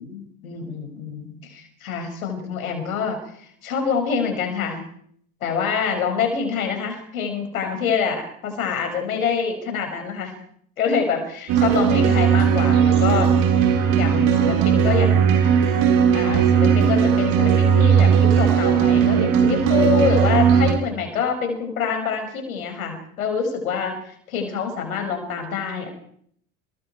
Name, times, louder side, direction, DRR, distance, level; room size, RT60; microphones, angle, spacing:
voice 1, 0.0-4.9 5.4-10.3 10.8-13.4 14.0-15.3 16.1-25.9, left 6 dB, 85° left, 5 dB, 6.1 m, -26 dB
sound 1, 11.5-20.7, right 7 dB, 55° right, 6.4 m, -17 dB
29.5 x 22.5 x 4.6 m, 0.65 s
hypercardioid pair, 80°, 41 cm